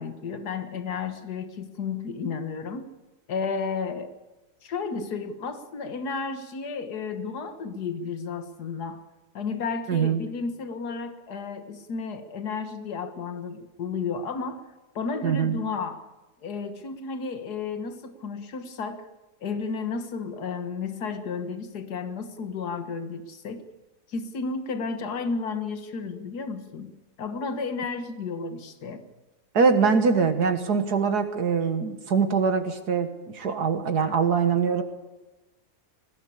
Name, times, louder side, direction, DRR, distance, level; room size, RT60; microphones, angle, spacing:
voice 1, 0.0-2.9 3.3-4.1 4.6-9.0 9.3-14.6 15.0-16.0 16.4-19.0 19.4-23.6 24.1-26.9 27.2-29.0 29.8-29.9, left 5 dB, 75° left, 8 dB, 2.0 m, -32 dB
voice 2, 9.9-10.2 15.2-15.6 29.5-34.8, right 5 dB, 75° right, 8 dB, 2.1 m, -23 dB
20.0 x 17.0 x 8.5 m, 1.1 s
omnidirectional pair, 1.7 m